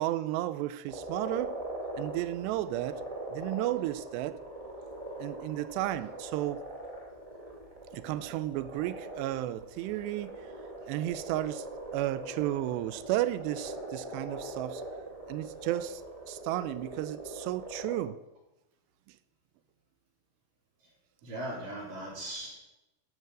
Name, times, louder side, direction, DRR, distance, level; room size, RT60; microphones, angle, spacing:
voice 1, 0.0-1.6 2.0-3.0 3.3-4.4 5.2-6.7 7.9-10.3 10.9-11.7 11.9-14.8 15.3-18.2, right 15 dB, 90° right, 2.8 m, -33 dB
sound 1, 0.9-18.0, right 1 dB, 20° right, 1.0 m, -42 dB
voice 2, 21.2-22.6, right 1 dB, 55° right, 5.5 m, -39 dB
12.0 x 10.5 x 6.3 m
omnidirectional pair, 4.8 m